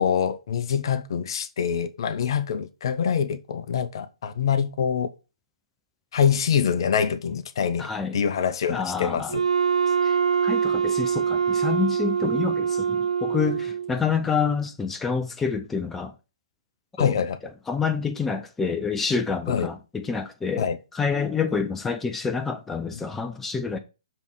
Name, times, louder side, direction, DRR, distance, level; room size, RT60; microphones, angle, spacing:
voice 1, 0.0-5.1 6.1-9.4 17.0-17.4 19.5-19.7 20.6-20.8, left 7 dB, 50° left, 0.8 m, -25 dB
voice 2, 7.8-8.2 8.7-9.3 10.0-10.2 10.4-16.1 17.0-17.1 17.7-23.8, left 5 dB, 10° left, 0.6 m, -27 dB
Wind instrument woodwind instrument, 9.3-14.0, right 7 dB, 85° right, 0.5 m, -24 dB
7.0 x 3.5 x 6.2 m
figure-of-eight pair, 130°, 3 cm